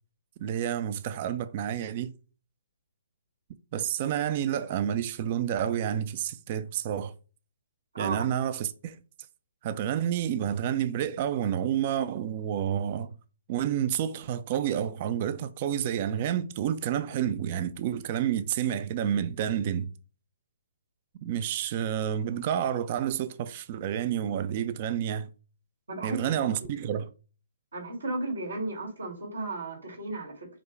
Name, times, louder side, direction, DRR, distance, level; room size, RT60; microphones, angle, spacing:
voice 1, 0.4-2.2 3.7-7.1 8.0-9.0 9.6-13.2 13.5-19.9 21.2-25.3 26.0-27.1, right 10 dB, 40° right, 0.4 m, -29 dB
voice 2, 7.9-8.3 25.9-26.7 27.7-30.5, right 2 dB, 90° right, 2.3 m, -34 dB
4.8 x 2.2 x 4.5 m
hypercardioid pair, 140°, 0 cm